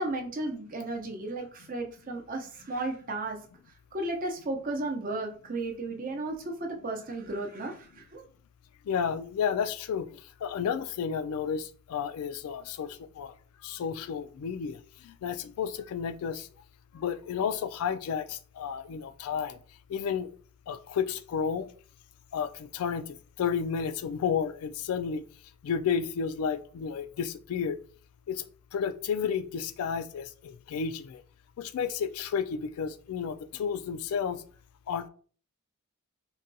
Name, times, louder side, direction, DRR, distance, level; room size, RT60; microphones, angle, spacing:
voice 1, 0.0-3.4 3.9-8.2, right 2 dB, 40° right, 2 dB, 0.6 m, -34 dB
voice 2, 8.9-13.3 13.6-16.5 16.9-19.6 19.9-20.3 20.7-21.7 22.3-25.2 25.6-27.8 28.3-28.4 28.7-31.2 31.6-34.4 34.9-35.1, left 7 dB, 80° left, 12 dB, 0.3 m, -32 dB
3.8 x 2.2 x 2.6 m, 0.43 s
head